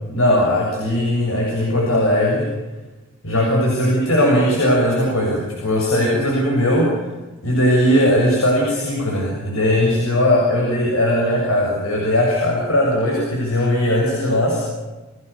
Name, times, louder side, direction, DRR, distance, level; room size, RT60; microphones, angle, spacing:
voice 1, 0.1-2.5 3.2-7.0 7.4-14.6, left 1 dB, 85° left, -2 dB, 7.2 m, -18 dB
29.5 x 19.5 x 7.0 m, 1.2 s
head